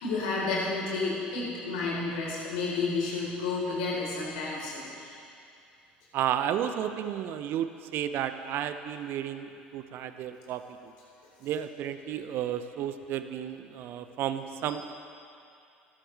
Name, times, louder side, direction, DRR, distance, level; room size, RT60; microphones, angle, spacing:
voice 1, 0.0-5.1 14.7-14.8, left 3 dB, 65° left, -5 dB, 4.0 m, -31 dB
voice 2, 6.1-10.6 11.4-14.9, right 10 dB, 50° right, 10 dB, 0.6 m, -32 dB
20.0 x 12.0 x 3.4 m, 2.5 s
figure-of-eight pair, 65°, 5 cm